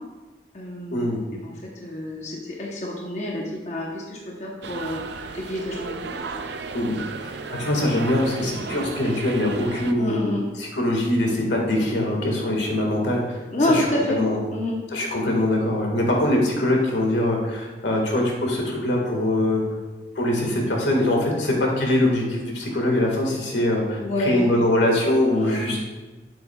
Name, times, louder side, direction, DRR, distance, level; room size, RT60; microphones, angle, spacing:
voice 1, 0.5-1.5 1.8-5.0 5.3-6.2 7.7-7.8 8.6-8.7 10.0-10.4 13.5-14.2 14.5-14.8 24.0-24.6 25.3-25.6, left 1 dB, 40° left, -2 dB, 1.0 m, -28 dB
sound 1, 4.6-9.9, right 4 dB, 75° right, 0.5 m, -35 dB
voice 2, 6.7-10.2 10.6-13.4 13.7-14.4 14.9-19.6 20.2-25.9, left 1 dB, 85° left, 0 dB, 1.8 m, -23 dB
8.5 x 7.9 x 2.3 m, 1.2 s
head